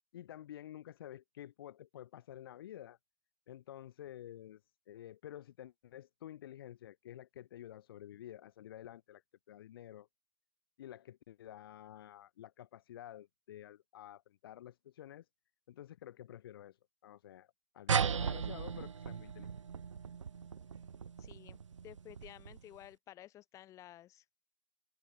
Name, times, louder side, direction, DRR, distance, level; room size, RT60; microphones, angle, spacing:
voice 1, 0.1-3.0 3.5-4.6 4.9-9.2 9.5-10.1 10.8-15.2 15.7-16.8 17.0-17.5 17.7-19.5, left 12 dB, 50° left, 6.1 m, -50 dB
sound 1, 17.9-22.8, right 6 dB, 80° right, 1.2 m, -37 dB
voice 2, 21.2-24.2, left 13 dB, 20° left, 7.8 m, -54 dB
open air
hypercardioid pair, 145°, 16 cm